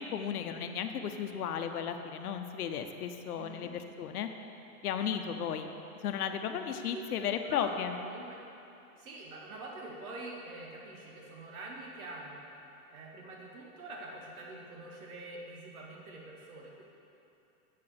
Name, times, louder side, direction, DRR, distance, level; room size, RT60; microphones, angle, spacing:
voice 1, 0.0-4.3 4.8-5.7 6.0-7.9, left 8 dB, 80° left, 6 dB, 0.9 m, -34 dB
voice 2, 3.3-3.7 6.9-7.0 7.4-7.7 8.0-8.4 9.0-12.5 12.9-16.8, right 2 dB, 70° right, -2 dB, 1.9 m, -45 dB
7.5 x 5.8 x 7.8 m, 2.8 s
supercardioid pair, 175°, 44 cm